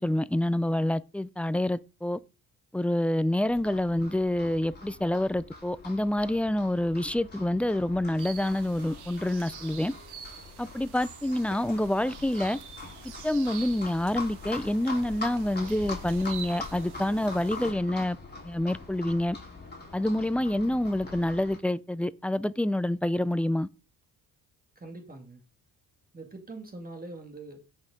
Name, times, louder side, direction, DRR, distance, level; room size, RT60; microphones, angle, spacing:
voice 1, 0.0-2.2 2.7-9.9 10.6-12.6 13.2-18.2 18.4-19.4 19.9-23.7, left 1 dB, 5° left, 0.4 m, -27 dB
Livestock farm animals working animals, 3.5-21.6, left 3 dB, 25° left, 4.0 m, -43 dB
sound 1, 8.2-17.7, right 8 dB, 75° right, 1.8 m, -47 dB
voice 2, 24.8-25.4 26.1-27.6, right 2 dB, 20° right, 2.4 m, -43 dB
15.5 x 5.7 x 3.8 m
cardioid pair, 85°, 39 cm